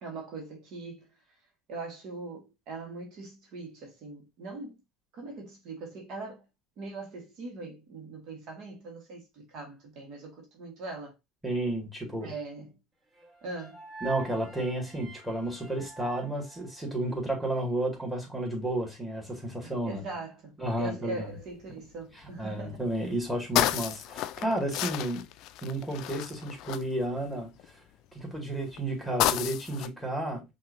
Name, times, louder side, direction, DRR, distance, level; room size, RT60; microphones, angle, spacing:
voice 1, 0.0-1.1 1.7-4.7 5.1-6.5 6.8-11.2 12.2-12.8 13.4-13.8 19.6-22.8, right 3 dB, 55° right, 1.5 m, -41 dB
voice 2, 11.4-12.3 14.0-20.0 20.6-21.3 22.4-25.2 25.6-27.7 28.1-30.4, right 1 dB, 5° right, 2.3 m, -32 dB
sound 1, 13.1-17.3, right 3 dB, 25° right, 1.5 m, -46 dB
sound 2, 21.3-21.7 22.2-22.3 22.5-27.7 28.4-29.9, left 13 dB, 60° left, 0.4 m, -31 dB
5.5 x 2.7 x 2.7 m
hypercardioid pair, 75°, 0 cm